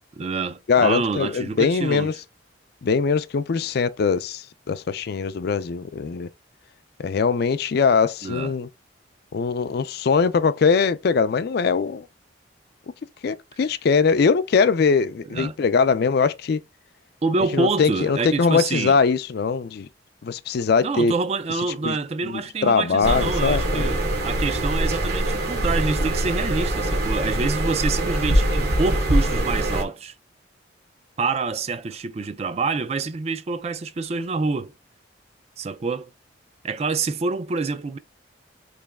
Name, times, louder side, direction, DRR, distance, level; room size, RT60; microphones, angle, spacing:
voice 1, 0.2-2.1 8.2-8.5 15.3-15.5 17.2-19.0 20.8-30.1 31.2-34.7 35.6-36.1 36.6-38.0, right 4 dB, 35° right, 0.4 m, -27 dB
voice 2, 0.7-2.1 2.8-6.3 7.0-8.7 9.3-12.0 13.2-16.6 17.5-19.9 20.2-21.1 21.8-22.0 22.2-24.0, left 5 dB, 55° left, 0.4 m, -21 dB
sound 1, 23.0-29.8, right 1 dB, 55° right, 1.1 m, -23 dB
3.2 x 3.0 x 3.4 m
head